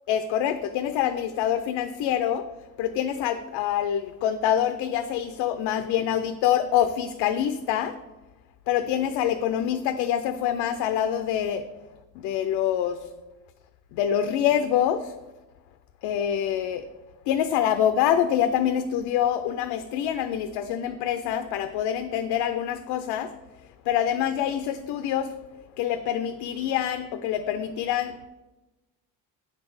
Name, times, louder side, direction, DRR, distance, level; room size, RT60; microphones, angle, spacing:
voice 1, 0.1-2.5 2.8-8.0 8.7-11.7 12.2-13.1 13.9-15.1 16.0-16.9 17.3-23.3 23.8-25.3 25.8-28.2, left 10 dB, 85° left, 8 dB, 0.6 m, -25 dB
9.2 x 4.2 x 6.1 m, 1.1 s
cardioid pair, 175°, 40 cm